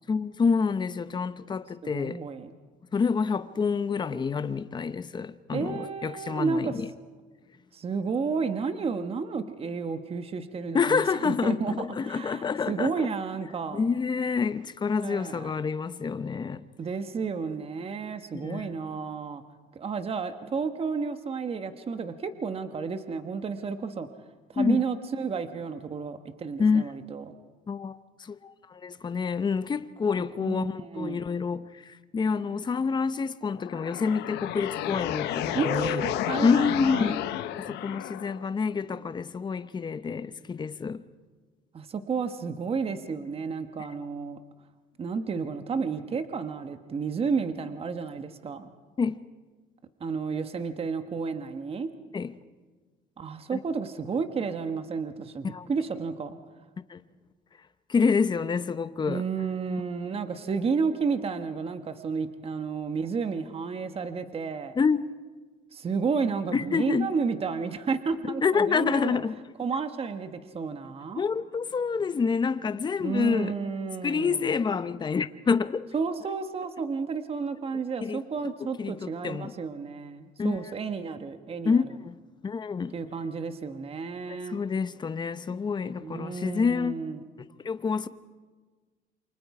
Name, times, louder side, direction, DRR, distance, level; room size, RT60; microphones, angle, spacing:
voice 1, 0.1-2.2 2.9-6.9 10.7-13.1 13.7-16.7 18.3-18.7 24.6-24.8 26.6-26.8 27.7-36.0 36.4-37.2 37.7-41.0 49.0-49.2 52.1-52.3 53.5-53.6 55.4-55.7 56.9-57.0 57.9-59.2 64.8-65.1 66.5-67.1 68.4-69.4 71.2-73.5 74.0-75.9 78.0-78.2 78.4-78.5 78.8-79.5 80.4-80.6 81.6-82.2 82.4-82.9 84.3-87.0 87.4-88.1, left 5 dB, 25° left, 0.8 m, -27 dB
voice 2, 1.8-2.5 5.5-6.7 7.7-13.8 15.0-15.5 16.8-19.4 19.7-24.1 24.5-27.2 30.3-31.2 35.5-37.2 41.7-44.4 45.0-48.7 50.0-51.9 53.2-56.4 59.1-64.7 65.7-69.2 69.6-71.2 73.0-74.5 75.9-81.8 82.9-84.6 86.0-87.2, right 5 dB, 35° right, 1.3 m, -31 dB
sound 1, 33.5-38.5, left 12 dB, 85° left, 1.1 m, -32 dB
28.0 x 25.0 x 4.9 m
cardioid pair, 110°, 17 cm